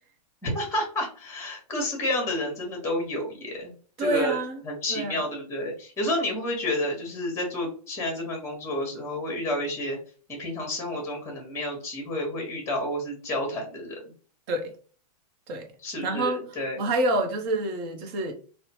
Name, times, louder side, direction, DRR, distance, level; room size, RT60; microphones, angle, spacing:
voice 1, 0.4-3.7 4.0-4.4 4.6-10.0 10.3-14.0 15.8-16.8, left 1 dB, 10° left, 1.1 m, -30 dB
voice 2, 4.0-4.6 4.9-5.2 14.5-14.7 15.5-15.7 16.0-18.3, right 2 dB, 35° right, 0.7 m, -27 dB
3.1 x 2.0 x 2.8 m
hypercardioid pair, 140°, 21 cm